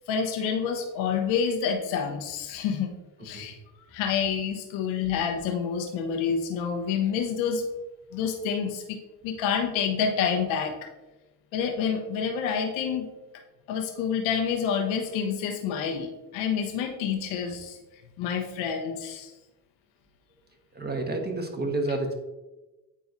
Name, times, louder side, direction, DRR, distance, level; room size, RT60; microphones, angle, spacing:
voice 1, 0.0-2.9 3.2-3.6 3.9-7.6 8.1-10.8 11.5-13.1 13.7-17.8 18.2-19.3, left 7 dB, 70° left, 3 dB, 1.1 m, -28 dB
voice 2, 20.7-22.1, right 2 dB, 20° right, 4 dB, 1.3 m, -29 dB
8.7 x 4.6 x 2.7 m, 1.1 s
hypercardioid pair, 60°, 48 cm